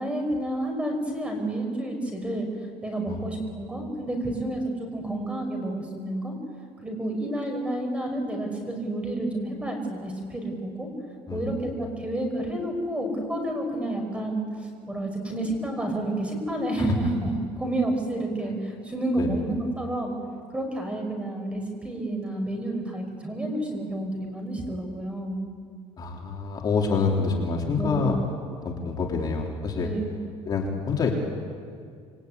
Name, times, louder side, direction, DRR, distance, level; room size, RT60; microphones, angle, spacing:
voice 1, 0.0-2.5 2.8-6.3 6.8-10.9 11.3-17.3 17.6-20.1 20.5-25.5 27.8-28.1 29.8-30.2, right 1 dB, 10° right, 3 dB, 5.5 m, -30 dB
voice 2, 11.3-11.6 16.8-16.9 19.2-19.3 26.0-28.2 28.6-29.9 30.5-31.1, left 5 dB, 35° left, 0 dB, 3.6 m, -27 dB
27.5 x 22.5 x 9.7 m, 2.2 s
cardioid pair, 145°, 12 cm